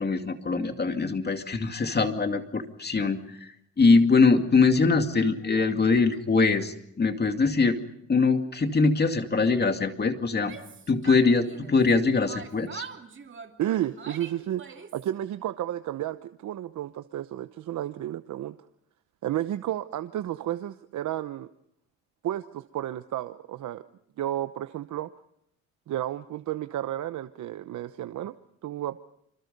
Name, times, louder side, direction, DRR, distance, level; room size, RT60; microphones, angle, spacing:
voice 1, 0.0-3.2 3.8-7.8 8.1-10.6 10.9-12.8, left 4 dB, 35° left, 6 dB, 2.3 m, -22 dB
Yell, 10.3-11.9 12.3-15.1, right 7 dB, 40° right, 2.6 m, -43 dB
voice 2, 13.6-18.6 19.2-21.5 22.2-23.8 24.2-25.1 25.9-28.3 28.6-29.0, right 12 dB, 75° right, 11 dB, 1.0 m, -32 dB
26.5 x 26.5 x 5.4 m, 0.72 s
cardioid pair, 90°, 30 cm